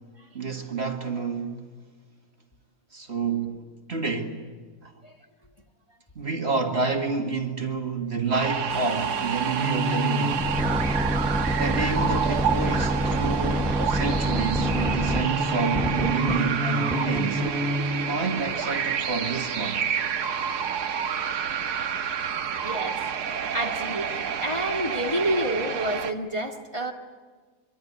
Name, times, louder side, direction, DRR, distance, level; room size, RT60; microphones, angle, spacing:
voice 1, 0.3-1.7 2.9-4.4 4.8-4.9 6.2-10.5 11.6-17.5 18.1-19.8, right 4 dB, 40° right, 2.1 m, -29 dB
sound 1, 8.3-26.1, right 8 dB, 90° right, 1.7 m, -29 dB
sound 2, 8.7-14.9, left 3 dB, 55° left, 4.1 m, -45 dB
sound 3, 9.6-18.2, equal, ahead, 0.7 m, -27 dB
voice 2, 22.5-23.0 23.5-26.9, right 1 dB, 20° left, 1.7 m, -29 dB
25.0 x 24.0 x 9.6 m
omnidirectional pair, 1.7 m